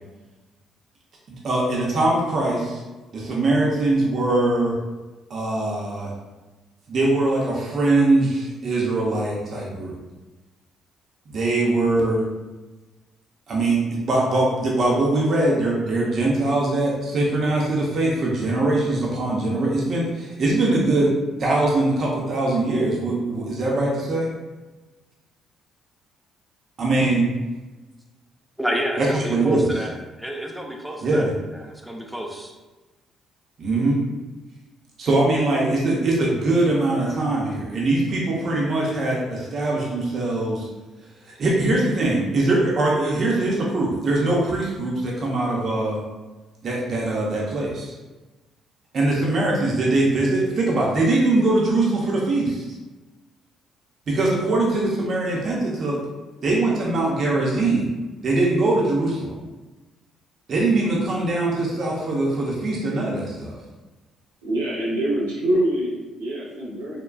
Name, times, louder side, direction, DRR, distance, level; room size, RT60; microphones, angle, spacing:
voice 1, 1.4-2.8 3.1-4.8 5.3-6.1 6.9-10.0 11.3-12.3 13.5-21.1 21.4-24.3 26.8-27.3 29.0-29.8 31.0-31.3 33.6-34.0 35.0-40.7 41.3-46.0 46.6-47.9 48.9-52.6 54.1-56.0 56.4-57.9 58.2-59.4 60.5-63.6, right 2 dB, 55° right, -3 dB, 0.7 m, -22 dB
voice 2, 28.6-31.3 31.5-32.5, equal, 5° right, 1 dB, 0.6 m, -30 dB
voice 3, 64.4-67.0, right 1 dB, 90° right, -7 dB, 0.8 m, -24 dB
3.6 x 2.3 x 2.2 m, 1.2 s
hypercardioid pair, 50°, 0 cm